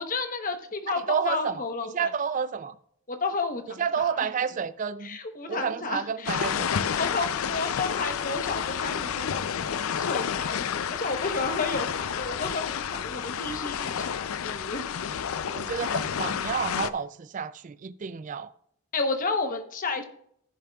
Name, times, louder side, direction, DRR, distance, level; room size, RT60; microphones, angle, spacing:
voice 1, 0.0-2.1 3.1-3.8 4.2-4.3 5.0-6.4 7.0-14.9 18.9-20.1, left 3 dB, 40° left, 0.9 m, -32 dB
voice 2, 1.1-2.8 3.8-5.2 5.5-6.7 15.5-18.5, right 6 dB, 35° right, 0.3 m, -30 dB
sound 1, 6.2-16.9, left 7 dB, 70° left, 0.4 m, -30 dB
14.5 x 7.0 x 2.3 m
head